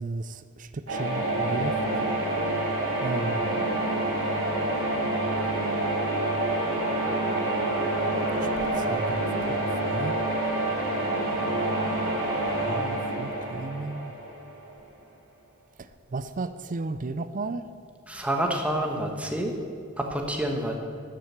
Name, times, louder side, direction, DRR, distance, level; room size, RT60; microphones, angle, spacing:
voice 1, 0.0-1.8 3.0-3.6 8.3-10.1 12.6-14.1 15.8-17.7, right 3 dB, 35° right, 12 dB, 0.5 m, -34 dB
sound 1, 0.9-14.7, right 1 dB, 60° right, 3.5 m, -27 dB
voice 2, 18.1-19.5 20.0-20.8, right 1 dB, 5° right, 1 dB, 1.2 m, -28 dB
12.5 x 7.6 x 7.3 m, 2.3 s
head